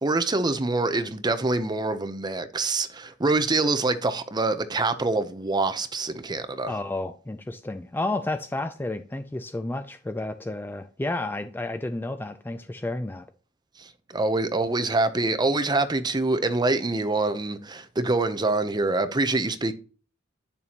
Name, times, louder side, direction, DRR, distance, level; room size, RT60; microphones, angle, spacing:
voice 1, 0.0-6.7 13.8-19.7, right 2 dB, 20° right, 0.7 m, -25 dB
voice 2, 6.7-13.3, left 2 dB, 10° left, 0.3 m, -31 dB
10.0 x 6.8 x 2.9 m
head